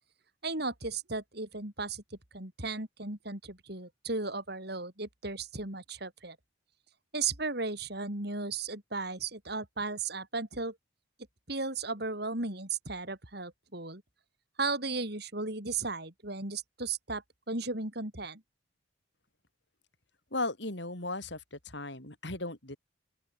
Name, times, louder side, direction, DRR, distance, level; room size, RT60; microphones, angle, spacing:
voice 1, 0.4-2.0 2.3-6.4 7.1-10.8 11.5-14.0 14.6-18.4, right 3 dB, 55° right, 4.5 m, -35 dB
voice 2, 20.3-22.8, left 2 dB, 60° left, 5.2 m, -36 dB
open air
head